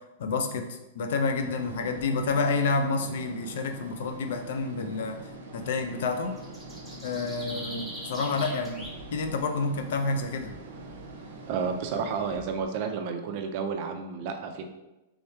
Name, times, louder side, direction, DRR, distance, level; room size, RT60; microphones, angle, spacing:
voice 1, 0.2-5.2 5.5-6.3 7.0-10.5, left 3 dB, 65° left, 6 dB, 0.5 m, -29 dB
sound 1, 1.4-12.4, right 2 dB, 85° right, 0.6 m, -44 dB
sound 2, 5.6-12.6, equal, ahead, 0.7 m, -44 dB
voice 2, 11.5-14.7, right 5 dB, 45° right, 5 dB, 0.4 m, -31 dB
3.3 x 3.1 x 3.2 m, 0.99 s
supercardioid pair, 160°, 0 cm